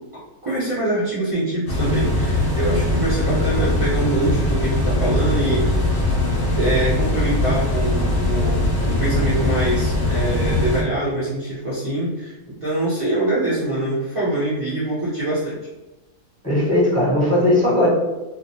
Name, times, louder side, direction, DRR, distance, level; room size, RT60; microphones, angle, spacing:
voice 1, 0.0-6.0 6.5-12.3 12.6-15.6, right 1 dB, 50° right, -12 dB, 0.3 m, -24 dB
sound 1, 1.7-10.8, left 1 dB, 70° left, 0.6 m, -21 dB
voice 2, 16.4-17.9, left 1 dB, 5° left, -9 dB, 0.8 m, -17 dB
2.5 x 2.1 x 2.7 m, 1.1 s
omnidirectional pair, 1.7 m